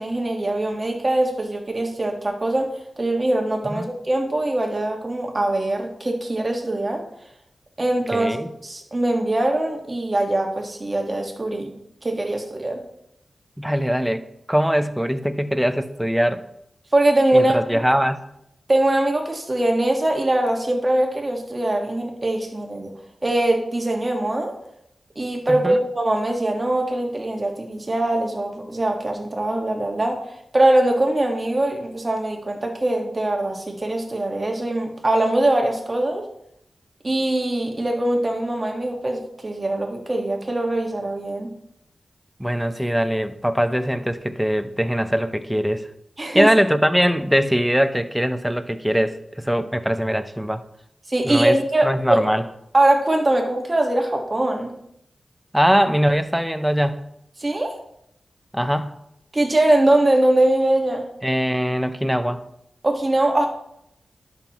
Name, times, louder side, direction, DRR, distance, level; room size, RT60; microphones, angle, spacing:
voice 1, 0.0-2.7 3.0-7.0 7.8-8.4 8.6-11.7 12.0-12.8 16.9-17.6 18.7-22.9 23.2-24.5 25.1-30.2 30.5-36.2 37.0-41.5 46.2-46.5 51.1-52.2 52.7-54.7 57.4-57.8 59.3-61.1 62.8-63.5, right 1 dB, 35° right, 2 dB, 1.6 m, -22 dB
voice 2, 8.1-8.5 13.6-16.4 17.3-18.2 25.5-25.8 42.4-45.9 46.3-50.6 51.2-51.6 51.8-52.4 55.5-57.0 58.5-59.0 61.2-62.4, equal, 5° right, 11 dB, 0.6 m, -21 dB
11.0 x 5.8 x 3.0 m, 0.77 s
cardioid pair, 50°, 0 cm